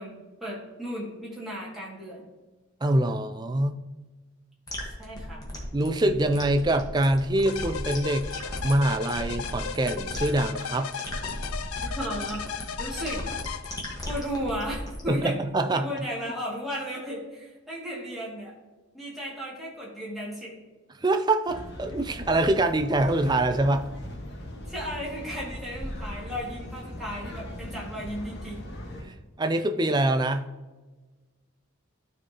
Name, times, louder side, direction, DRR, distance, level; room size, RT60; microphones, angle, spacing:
voice 1, 0.0-2.3 5.0-5.4 11.8-12.4 12.8-13.2 14.1-15.4 15.7-18.5 18.9-20.5 24.6-28.7, equal, ahead, -7 dB, 2.1 m, -35 dB
voice 2, 2.8-3.8 5.7-8.3 8.6-10.9 15.1-16.1 21.0-23.9 29.0-30.5, right 1 dB, 20° right, 8 dB, 0.4 m, -24 dB
sound 1, 4.7-15.1, left 1 dB, 15° left, 1.3 m, -37 dB
sound 2, 7.5-14.3, left 7 dB, 85° left, 0.5 m, -36 dB
sound 3, 21.5-29.0, left 1 dB, 50° left, 1.5 m, -39 dB
12.5 x 4.7 x 2.9 m, 1.2 s
head